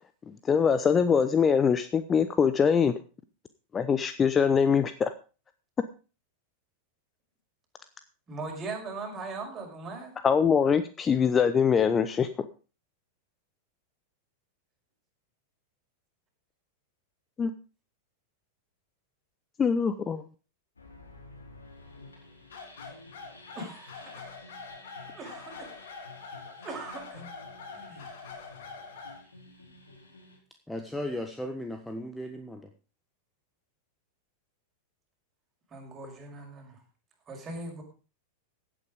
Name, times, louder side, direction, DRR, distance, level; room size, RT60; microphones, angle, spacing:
voice 1, 0.5-2.9 3.7-5.1 10.2-12.3 17.4-17.5 19.6-20.2, left 6 dB, 20° left, 11 dB, 0.8 m, -23 dB
voice 2, 8.3-10.1 23.5-24.3 25.1-25.7 26.5-27.3 27.7-28.1 35.7-36.8 37.3-37.8, right 3 dB, 20° right, 1 dB, 5.7 m, -40 dB
sound 1, 20.8-30.4, left 2 dB, 75° left, 4.6 m, -51 dB
sound 2, 22.5-29.2, left 4 dB, 55° left, 3.9 m, -45 dB
voice 3, 30.7-32.7, left 1 dB, 5° left, 5 dB, 1.4 m, -36 dB
16.0 x 8.8 x 5.0 m, 0.35 s
figure-of-eight pair, 90°, 0 cm